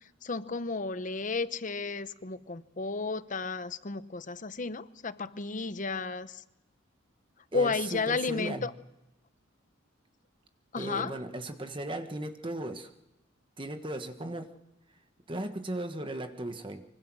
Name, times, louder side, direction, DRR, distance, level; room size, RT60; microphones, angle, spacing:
voice 1, 0.2-6.4 7.5-8.7 10.7-11.1, left 4 dB, 40° left, 14 dB, 0.9 m, -33 dB
voice 2, 7.5-8.7 10.8-12.9 13.6-14.5 15.3-16.8, right 1 dB, 25° right, 7 dB, 1.4 m, -36 dB
25.0 x 24.5 x 6.3 m, 0.93 s
head